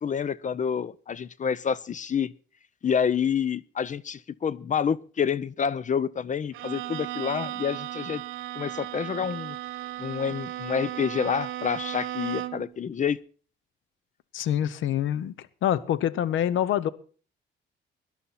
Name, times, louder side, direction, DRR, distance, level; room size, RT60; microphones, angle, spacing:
voice 1, 0.0-2.3 2.8-8.2 8.6-9.6 10.0-13.2, left 7 dB, 40° left, 0.6 m, -28 dB
Bowed string instrument, 6.5-12.7, right 14 dB, 80° right, 1.0 m, -35 dB
voice 2, 14.3-15.3 15.6-16.9, left 10 dB, 80° left, 0.9 m, -25 dB
18.0 x 11.5 x 4.2 m
cardioid pair, 90°, 20 cm